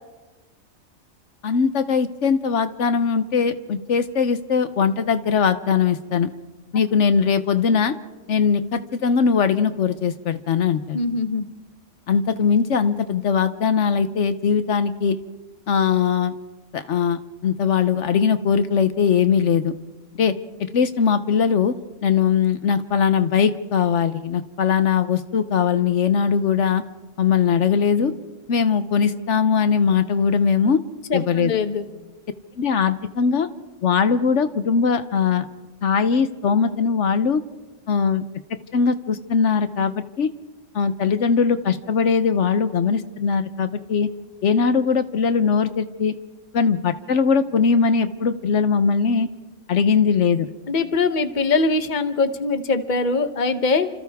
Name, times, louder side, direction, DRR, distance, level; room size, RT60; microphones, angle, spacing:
voice 1, 1.4-6.3 6.7-7.9 8.3-11.0 12.1-15.2 15.7-16.3 16.7-19.7 20.2-20.3 20.7-21.8 22.0-26.8 27.2-28.1 28.5-30.8 31.1-31.5 32.6-33.5 33.8-35.4 35.8-37.4 37.9-38.2 38.7-40.3 40.7-44.1 44.4-46.1 46.5-49.3 49.7-50.5, left 6 dB, 75° left, 11 dB, 1.2 m, -20 dB
voice 2, 10.9-11.5 31.1-31.9 50.7-53.9, left 3 dB, 40° left, 10 dB, 1.1 m, -22 dB
30.0 x 26.5 x 3.5 m, 1.2 s
omnidirectional pair, 1.2 m